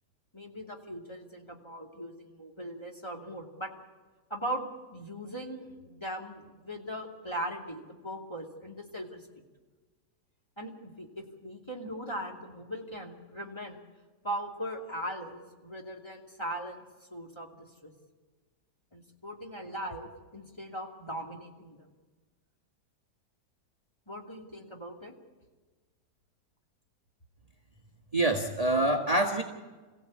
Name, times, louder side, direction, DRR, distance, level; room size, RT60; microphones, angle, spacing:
voice 1, 0.3-3.7 4.3-4.7 4.9-9.2 10.6-13.8 14.2-16.8 17.1-17.9 18.9-21.9 24.1-25.1, right 1 dB, 15° left, 0 dB, 2.7 m, -39 dB
voice 2, 28.1-29.4, right 1 dB, 20° right, 2 dB, 1.7 m, -26 dB
27.0 x 16.5 x 8.5 m, 1.3 s
omnidirectional pair, 1.8 m